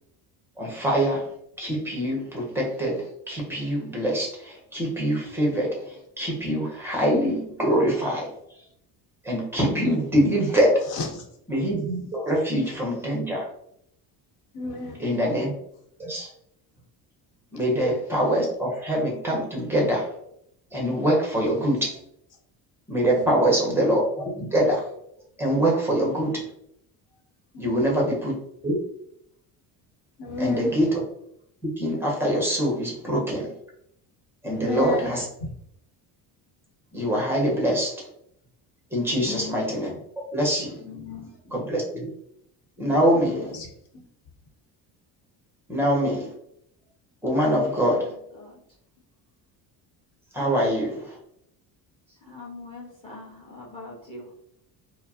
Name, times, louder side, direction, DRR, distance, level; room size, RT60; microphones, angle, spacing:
voice 1, 0.6-1.3 1.6-8.3 9.2-10.8 11.5-13.5 15.0-15.5 16.0-16.3 17.5-20.1 20.7-22.0 22.9-24.9 25.4-26.4 27.6-28.3 28.6-28.8 30.4-31.0 31.6-33.5 34.4-35.2 36.9-38.1 38.9-40.0 40.3-40.8 41.5-42.1 42.8-43.5 45.7-46.3 47.2-48.1 50.3-51.2, equal, 5° right, -2 dB, 0.6 m, -24 dB
voice 2, 10.9-11.2 14.5-15.0 23.1-23.3 27.5-28.0 30.2-30.7 34.4-35.1 39.1-39.5 40.8-41.3 43.1-43.7, left 2 dB, 70° left, 3 dB, 0.9 m, -33 dB
voice 3, 52.2-54.3, left 2 dB, 15° left, -3 dB, 1.0 m, -42 dB
4.7 x 2.0 x 2.7 m, 0.73 s
cardioid pair, 180°, 41 cm